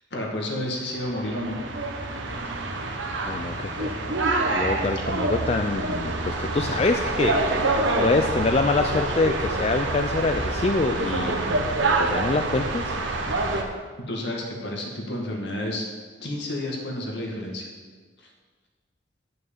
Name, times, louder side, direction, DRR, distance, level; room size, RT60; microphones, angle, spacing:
voice 1, 0.1-1.6 14.1-15.9 16.2-17.7 18.2-18.3, left 1 dB, 65° left, 0 dB, 2.0 m, -30 dB
sound 1, 0.9-13.6, right 2 dB, 80° right, 1.3 m, -26 dB
voice 2, 3.3-4.2 4.5-7.4 8.0-11.4 12.0-12.9, left 3 dB, 35° left, 5 dB, 0.4 m, -25 dB
9.5 x 6.4 x 7.2 m, 1.5 s
head